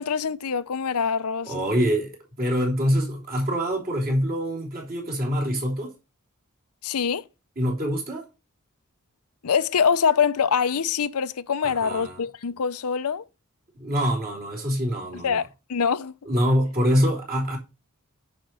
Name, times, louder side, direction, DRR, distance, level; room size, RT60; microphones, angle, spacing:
voice 1, 0.0-1.5 6.8-7.2 9.4-13.2 15.2-15.4 15.7-16.1, left 6 dB, 80° left, 0.6 m, -24 dB
voice 2, 1.4-5.9 7.6-8.3 11.6-12.2 13.7-15.4 16.3-17.6, equal, 45° right, 3.5 m, -25 dB
9.9 x 4.5 x 6.1 m
head